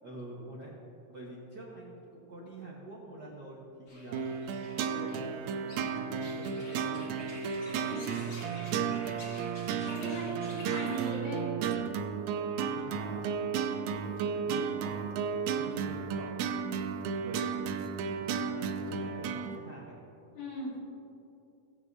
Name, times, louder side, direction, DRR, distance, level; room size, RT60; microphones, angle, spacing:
voice 1, 0.0-0.7 1.1-4.3 4.9-7.2 7.5-8.9 10.0-10.6 12.5-13.5 13.9-16.9 17.1-17.6 18.0-19.9, right 1 dB, 55° right, -5 dB, 1.1 m, -47 dB
sound 1, 3.9-11.2, left 1 dB, 35° left, 2.6 m, -50 dB
sound 2, 4.1-19.6, right 6 dB, 85° right, 1.6 m, -33 dB
voice 2, 9.9-11.5 20.3-20.8, equal, 80° left, -6 dB, 4.3 m, -38 dB
18.0 x 8.8 x 2.7 m, 2.8 s
omnidirectional pair, 3.8 m